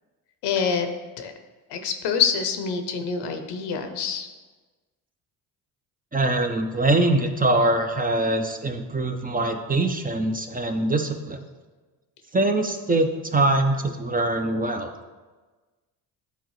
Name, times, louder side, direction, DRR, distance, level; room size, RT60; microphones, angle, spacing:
voice 1, 0.4-0.9 1.2-1.3 1.7-4.3, left 6 dB, 70° left, 6 dB, 0.9 m, -26 dB
voice 2, 6.1-11.4 12.3-14.9, right 2 dB, 20° right, 5 dB, 0.7 m, -23 dB
10.0 x 3.9 x 3.2 m, 1.3 s
hypercardioid pair, 55°, 42 cm